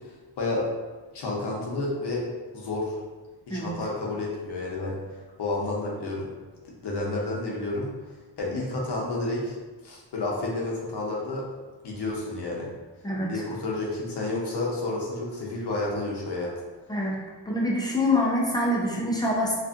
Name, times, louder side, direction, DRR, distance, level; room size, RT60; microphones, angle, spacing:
voice 1, 1.1-2.2 2.5-3.0 3.5-5.0 5.4-6.3 6.8-7.9 8.4-9.6 9.8-11.4 11.8-12.7 13.3-16.5, left 2 dB, 65° left, -3 dB, 0.8 m, -30 dB
voice 2, 13.0-13.4 16.9-17.2 17.5-19.6, left 1 dB, 10° left, -4 dB, 0.5 m, -25 dB
2.6 x 2.4 x 2.4 m, 1.3 s
cardioid pair, 95°, 44 cm